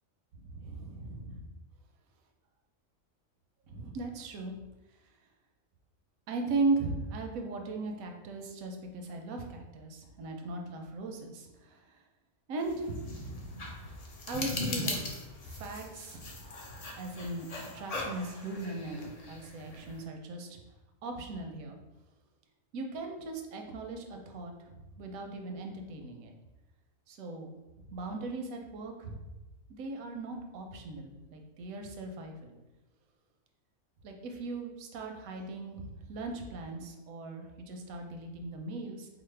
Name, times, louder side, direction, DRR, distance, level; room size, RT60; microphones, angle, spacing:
voice 1, 0.4-1.4 3.7-4.6 6.3-12.0 12.5-13.9 14.3-15.0 15.4-16.4 16.7-17.5 17.7-20.6 21.0-21.8 22.7-26.3 27.1-27.5 27.8-29.3 29.7-32.6 34.0-39.1, right 3 dB, 85° right, 3 dB, 1.0 m, -38 dB
sound 1, 12.6-20.0, left 2 dB, 70° left, 0.3 m, -40 dB
4.8 x 2.0 x 3.2 m, 1.1 s
omnidirectional pair, 1.4 m